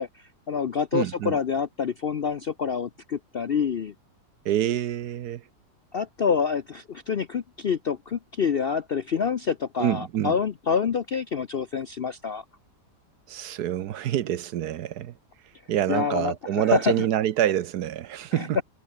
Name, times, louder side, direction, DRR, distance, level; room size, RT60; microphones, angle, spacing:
voice 1, 0.0-3.9 5.9-12.4 15.9-16.9 18.4-18.6, left 6 dB, 55° left, 0.6 m, -27 dB
voice 2, 0.9-1.4 4.4-5.4 9.8-10.4 13.3-15.1 15.7-18.6, right 11 dB, 70° right, 1.3 m, -26 dB
omnidirectional pair, 1.9 m